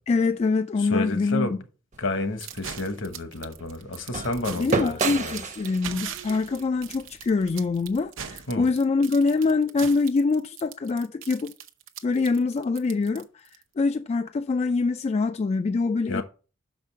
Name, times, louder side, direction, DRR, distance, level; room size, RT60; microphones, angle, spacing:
voice 1, 0.1-1.5 4.6-11.5 12.0-13.3 13.8-16.2, left 4 dB, 30° left, 0.3 m, -24 dB
voice 2, 0.8-1.6 2.0-5.4 8.5-8.7 16.1-16.2, left 2 dB, 70° left, 1.2 m, -30 dB
sound 1, 1.9-8.1, right 4 dB, 40° right, 0.9 m, -33 dB
sound 2, 2.4-13.6, right 9 dB, 70° right, 0.8 m, -40 dB
6.4 x 5.2 x 5.4 m
head